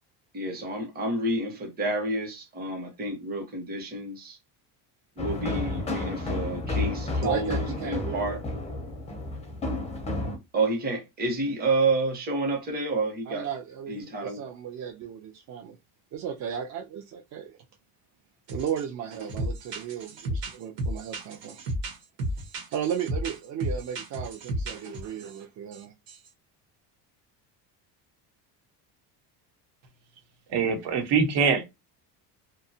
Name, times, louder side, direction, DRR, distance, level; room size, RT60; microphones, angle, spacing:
voice 1, 0.3-4.4 5.2-8.4 10.5-13.5 13.9-14.4, right 2 dB, 20° right, 0.8 m, -29 dB
sound 1, 5.2-10.4, left 2 dB, 15° left, 0.4 m, -31 dB
voice 2, 7.2-8.3 13.3-15.8 16.1-17.6 18.5-21.6 22.7-25.9, right 8 dB, 40° right, 0.4 m, -35 dB
sound 2, 18.5-18.8 19.1-25.4 25.7-25.8 26.1-26.3, right 1 dB, 85° right, 1.3 m, -33 dB
voice 3, 30.5-31.6, right 5 dB, 70° right, 1.0 m, -23 dB
2.7 x 2.3 x 2.6 m
cardioid pair, 150°, 43 cm